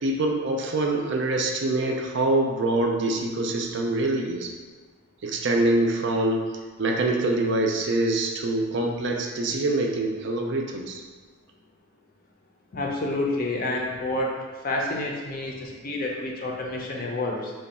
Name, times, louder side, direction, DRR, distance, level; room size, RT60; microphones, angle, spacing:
voice 1, 0.0-4.5 5.2-6.4 6.8-11.0, right 2 dB, 55° right, 1 dB, 0.4 m, -25 dB
voice 2, 12.7-14.4 14.6-17.5, left 2 dB, 40° left, -1 dB, 0.5 m, -29 dB
3.1 x 2.2 x 4.0 m, 1.4 s
head